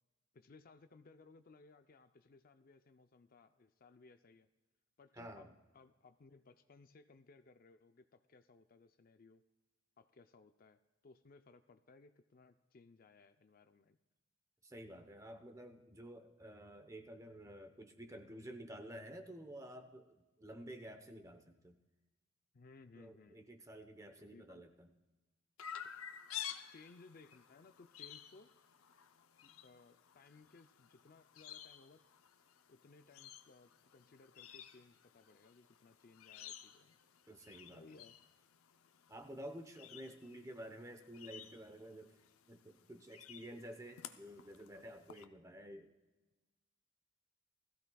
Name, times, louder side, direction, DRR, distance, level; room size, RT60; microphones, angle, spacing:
voice 1, 0.3-4.5 5.0-5.5 5.7-9.4 10.0-14.0 22.5-23.4 24.2-24.6 26.7-28.5 29.4-32.0 32.7-37.0 37.7-38.2, left 3 dB, 45° left, 9 dB, 0.5 m, -62 dB
voice 2, 5.1-5.5 14.6-21.8 23.0-24.9 37.3-37.9 39.1-42.2 42.5-45.9, right 1 dB, 15° right, 7 dB, 0.9 m, -51 dB
Chirp tweet, 25.6-45.2, left 9 dB, 90° left, 0.7 m, -53 dB
20.0 x 15.0 x 2.3 m, 1.2 s
head